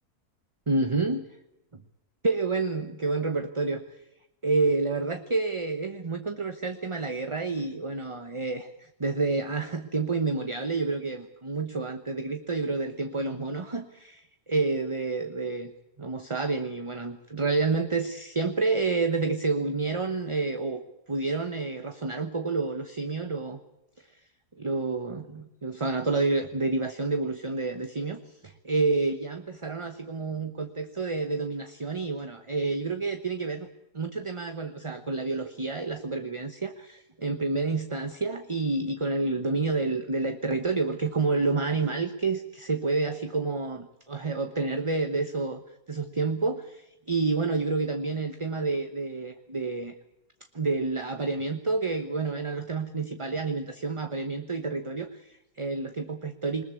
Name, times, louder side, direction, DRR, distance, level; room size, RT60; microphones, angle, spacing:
voice 1, 0.7-1.2 2.2-4.0 4.4-15.7 16.0-23.6 24.0-24.1 24.6-33.7 33.9-45.6 45.9-49.9 50.5-56.6, right 3 dB, 20° right, 8 dB, 1.0 m, -29 dB
22.0 x 20.5 x 8.4 m, 0.85 s
omnidirectional pair, 1.7 m